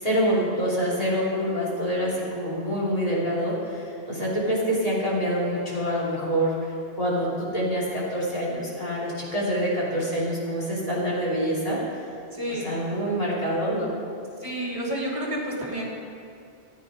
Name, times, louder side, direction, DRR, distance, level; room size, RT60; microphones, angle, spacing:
voice 1, 0.0-6.5 7.0-11.8 12.5-13.9, equal, 35° left, -6 dB, 3.2 m, -26 dB
voice 2, 12.3-12.7 14.4-15.9, equal, 30° right, -4 dB, 3.0 m, -30 dB
14.0 x 9.2 x 5.2 m, 2.6 s
omnidirectional pair, 1.1 m